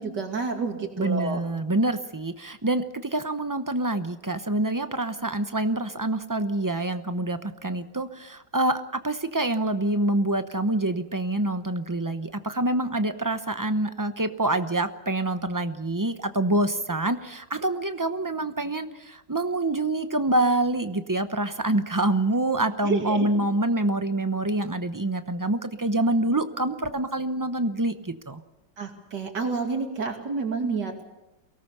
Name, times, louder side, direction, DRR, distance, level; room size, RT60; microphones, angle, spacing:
voice 1, 0.0-1.4 22.8-23.3 28.8-31.1, right 4 dB, 75° right, 4 dB, 3.0 m, -29 dB
voice 2, 1.0-28.4, right 2 dB, 30° right, 10 dB, 0.4 m, -26 dB
23.5 x 18.0 x 6.8 m, 1.0 s
omnidirectional pair, 1.9 m